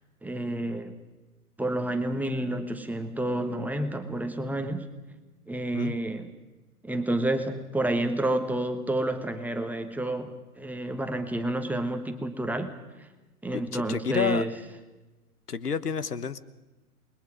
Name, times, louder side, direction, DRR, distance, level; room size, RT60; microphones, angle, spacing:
voice 1, 0.2-0.9 1.6-4.9 5.5-6.3 6.8-12.7 13.0-13.1 13.4-14.5, right 1 dB, 5° right, 6 dB, 1.3 m, -29 dB
voice 2, 13.5-14.4 15.5-16.4, left 6 dB, 80° left, 14 dB, 1.2 m, -29 dB
28.5 x 21.5 x 5.0 m, 1.1 s
figure-of-eight pair, 115°, 46 cm